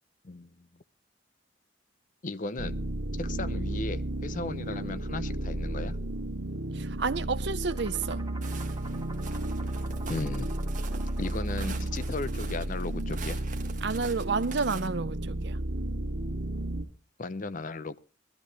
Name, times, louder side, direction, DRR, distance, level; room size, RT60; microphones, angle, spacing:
voice 1, 2.2-2.8 3.1-6.0 10.1-10.6 11.2-13.4 17.2-18.0, left 3 dB, 45° left, 0.7 m, -36 dB
sound 1, 2.6-16.8, right 1 dB, 85° right, 2.0 m, -33 dB
voice 2, 6.7-8.2 13.8-15.6, right 4 dB, 65° right, 0.6 m, -30 dB
sound 2, 7.7-13.0, right 4 dB, 20° right, 1.7 m, -49 dB
Walk footsteps, 8.4-14.9, right 6 dB, 45° right, 1.6 m, -46 dB
20.0 x 12.5 x 3.3 m
head